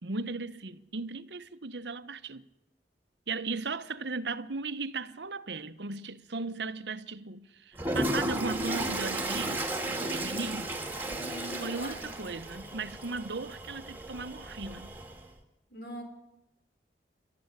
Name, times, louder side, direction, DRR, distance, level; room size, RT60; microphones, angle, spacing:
voice 1, 0.0-2.4 3.3-10.7 11.6-14.9, right 3 dB, 85° right, 1.0 m, -37 dB
Toilet flush, 7.7-15.3, right 1 dB, 10° right, 2.1 m, -34 dB
voice 2, 11.1-12.1 15.7-16.0, equal, 70° left, 4.4 m, -42 dB
27.5 x 13.0 x 9.7 m
head